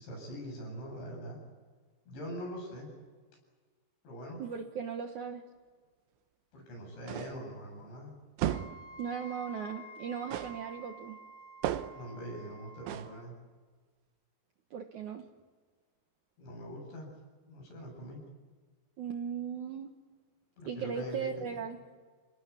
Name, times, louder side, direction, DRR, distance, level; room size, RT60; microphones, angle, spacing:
voice 1, 0.0-1.4 2.1-2.9 4.0-4.4 6.5-8.2 11.9-13.4 16.4-17.1 17.5-18.3 20.6-21.6, equal, 75° left, 1 dB, 10.0 m, -43 dB
voice 2, 4.4-5.4 9.0-11.2 14.7-15.2 19.0-19.9 20.6-21.8, right 7 dB, 65° right, 4 dB, 2.0 m, -37 dB
sound 1, 7.1-7.5 8.4-8.9 10.3-10.7 11.6-12.1 12.9-13.2, right 12 dB, 90° right, 3.4 m, -34 dB
Wind instrument woodwind instrument, 8.4-13.0, right 1 dB, 30° left, 4.4 m, -50 dB
30.0 x 18.5 x 9.7 m, 1.5 s
omnidirectional pair, 5.1 m